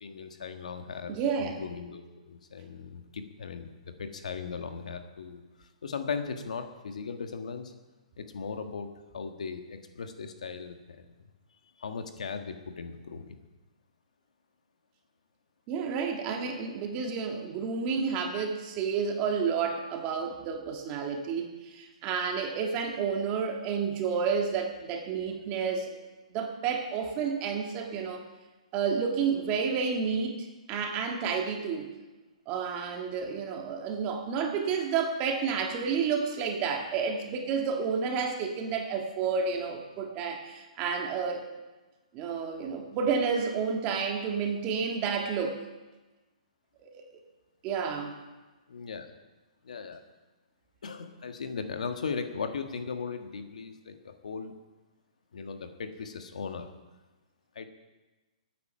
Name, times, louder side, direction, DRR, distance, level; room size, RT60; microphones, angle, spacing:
voice 1, 0.0-7.7 8.2-11.1 11.8-13.4 48.7-49.1 49.6-50.0 50.8-54.5 55.3-56.7 57.5-57.7, left 5 dB, 80° left, 6 dB, 1.6 m, -38 dB
voice 2, 1.1-1.6 15.7-25.9 26.3-28.2 28.7-31.9 32.5-41.5 42.1-45.6 46.8-47.0 47.6-48.1, right 6 dB, 25° right, 3 dB, 2.0 m, -30 dB
20.0 x 9.5 x 5.7 m, 1.2 s
hypercardioid pair, 155°, 4 cm